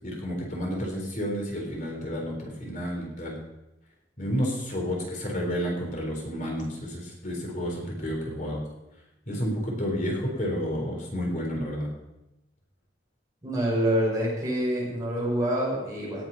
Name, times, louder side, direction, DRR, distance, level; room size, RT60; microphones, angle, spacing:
voice 1, 0.0-3.4 4.2-8.6 9.3-11.9, equal, 45° left, 0 dB, 3.9 m, -30 dB
voice 2, 13.4-16.2, equal, 20° right, -4 dB, 5.7 m, -26 dB
18.0 x 7.9 x 5.7 m, 0.92 s
head